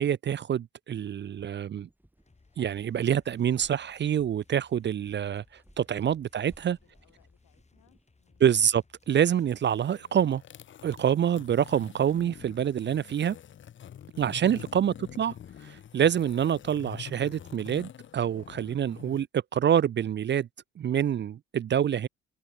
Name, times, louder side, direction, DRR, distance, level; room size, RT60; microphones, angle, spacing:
voice 1, 0.0-1.9 2.6-5.4 5.8-6.8 8.4-10.4 10.8-13.4 14.2-15.3 15.6-20.5 20.8-22.1, right 9 dB, 40° right, 0.4 m, -26 dB
sound 1, 1.0-8.9, right 1 dB, 5° right, 5.7 m, -61 dB
sound 2, 2.2-9.8, left 3 dB, 20° left, 3.4 m, -63 dB
voice 2, 6.6-8.4, left 14 dB, 85° left, 6.0 m, -68 dB
sound 3, 9.4-19.3, left 9 dB, 40° left, 0.6 m, -47 dB
cardioid pair, 90°, 30 cm